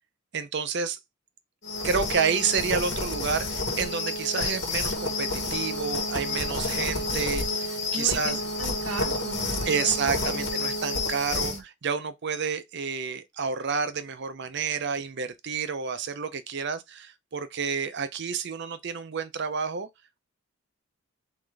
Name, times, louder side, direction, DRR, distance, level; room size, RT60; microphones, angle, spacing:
voice 1, 0.3-1.0 1.8-8.4 9.6-19.9, right 6 dB, 55° right, 0.6 m, -29 dB
sound 1, 1.6-11.6, left 2 dB, 55° left, 1.3 m, -30 dB
voice 2, 7.9-10.5 11.3-11.6, right 2 dB, 75° right, 1.0 m, -37 dB
3.9 x 3.7 x 3.3 m
head